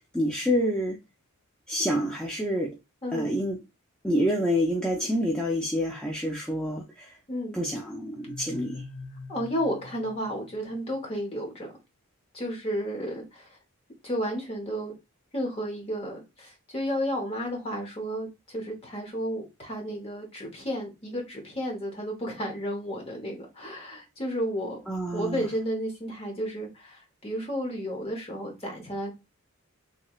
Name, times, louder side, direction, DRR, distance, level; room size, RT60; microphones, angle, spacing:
voice 1, 0.1-1.0 1.7-2.8 3.1-3.6 4.0-7.1 7.5-8.8 24.9-25.4, equal, 5° left, 0.4 m, -27 dB
voice 2, 7.3-7.6 9.3-11.7 12.3-13.6 14.0-14.9 15.3-24.8 25.1-29.1, equal, 25° left, 0.9 m, -32 dB
sound 1, 8.2-11.0, left 3 dB, 45° left, 0.6 m, -43 dB
3.1 x 3.0 x 2.3 m
head